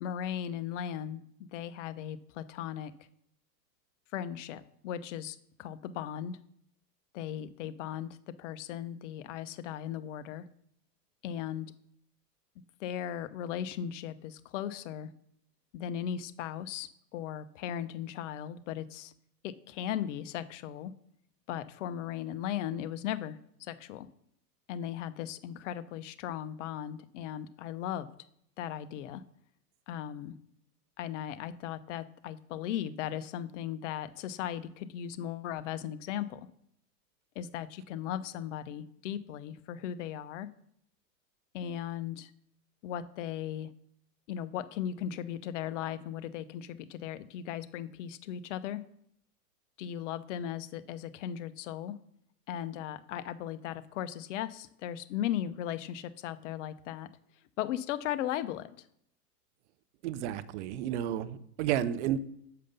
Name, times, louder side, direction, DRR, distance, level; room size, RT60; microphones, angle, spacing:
voice 1, 0.0-2.9 4.1-6.4 7.1-10.4 11.2-11.7 12.8-15.1 15.7-19.1 19.4-20.9 21.5-24.1 24.7-28.1 28.6-29.2 29.9-30.4 31.0-36.4 37.4-40.5 41.5-42.3 42.8-43.7 44.3-48.8 49.8-52.0 52.5-57.1 57.6-58.7, left 10 dB, 50° left, 0.6 m, -37 dB
voice 2, 60.0-62.2, right 11 dB, 45° right, 0.6 m, -31 dB
6.6 x 5.0 x 5.5 m
figure-of-eight pair, 100°, 50 cm